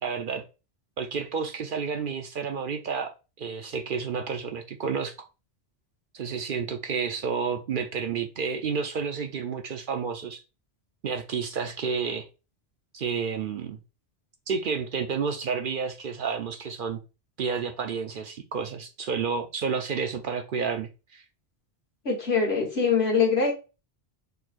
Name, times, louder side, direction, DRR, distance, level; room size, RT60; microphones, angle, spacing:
voice 1, 0.0-0.4 1.0-5.3 6.1-10.4 11.0-12.3 12.9-13.8 14.5-17.0 17.4-21.2, right 6 dB, 60° right, 0.6 m, -30 dB
voice 2, 22.0-23.5, left 5 dB, 70° left, 1.6 m, -23 dB
4.5 x 4.0 x 2.4 m
omnidirectional pair, 1.1 m